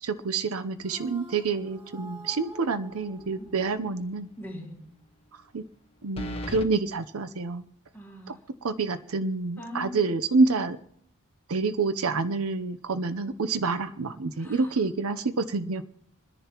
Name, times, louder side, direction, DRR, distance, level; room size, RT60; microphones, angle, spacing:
voice 1, 0.0-4.3 5.5-5.6 6.0-7.6 8.6-10.8 11.5-15.8, right 4 dB, 70° right, 13 dB, 0.7 m, -27 dB
sound 1, 0.8-4.2, right 1 dB, 30° right, 3.5 m, -48 dB
sound 2, 3.0-3.5 3.9-4.0 6.2-6.7, left 1 dB, 25° left, 0.9 m, -36 dB
voice 2, 4.4-4.8 7.9-8.4 9.6-10.0 14.4-14.8, left 1 dB, 10° left, -3 dB, 3.2 m, -41 dB
27.5 x 10.5 x 2.9 m, 0.69 s
head